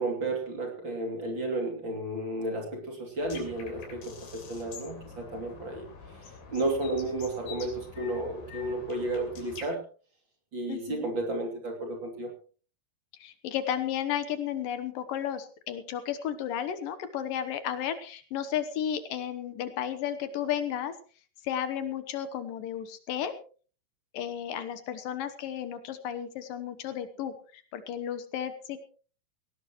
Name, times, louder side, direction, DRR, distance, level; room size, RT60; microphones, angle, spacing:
voice 1, 0.0-5.9 6.5-9.8 10.5-12.4, right 2 dB, 35° right, 2 dB, 3.2 m, -32 dB
sound 1, 3.2-9.7, left 5 dB, 90° left, 5.1 m, -46 dB
voice 2, 10.7-11.1 13.2-21.0 21.4-23.4 24.1-28.8, left 9 dB, 75° left, 11 dB, 2.7 m, -33 dB
19.0 x 17.5 x 3.1 m, 0.39 s
omnidirectional pair, 4.2 m